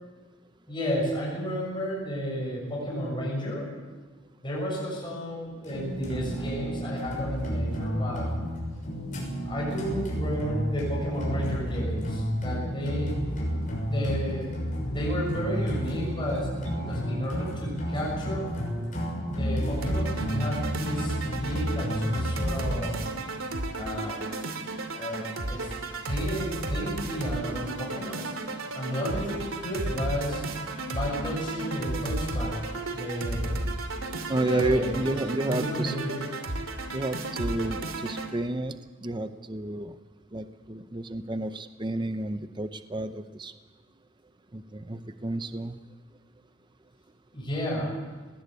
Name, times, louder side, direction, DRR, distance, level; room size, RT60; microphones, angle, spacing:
voice 1, 0.7-3.7 4.4-8.3 9.4-13.2 13.8-14.5 14.9-18.5 19.3-21.1 21.4-23.0 23.8-24.2 24.9-25.7 26.1-28.2 28.7-30.4 30.9-32.6 32.9-33.6 34.4-35.1 35.5-36.2 47.3-47.9, equal, 25° left, -4 dB, 7.0 m, -32 dB
sound 1, 5.6-22.9, equal, 40° left, 6.5 m, -31 dB
sound 2, 19.8-38.3, right 2 dB, 85° right, 2.6 m, -33 dB
voice 2, 34.3-35.9 36.9-38.7 39.0-39.9 40.3-43.5 44.5-45.8, right 1 dB, 20° right, 10 dB, 0.7 m, -31 dB
20.0 x 18.0 x 8.3 m, 1.3 s
head